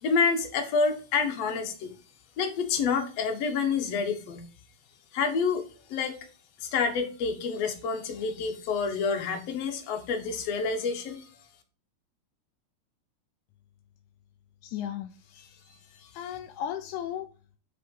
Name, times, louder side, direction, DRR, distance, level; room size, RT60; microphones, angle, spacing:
voice 1, 0.0-1.9 2.4-4.5 5.1-6.3 6.6-11.3 15.4-16.1, left 5 dB, 60° left, 2.3 m, -28 dB
voice 2, 14.6-15.5 16.1-17.3, left 10 dB, 85° left, 2.1 m, -35 dB
6.7 x 5.5 x 5.3 m
omnidirectional pair, 3.4 m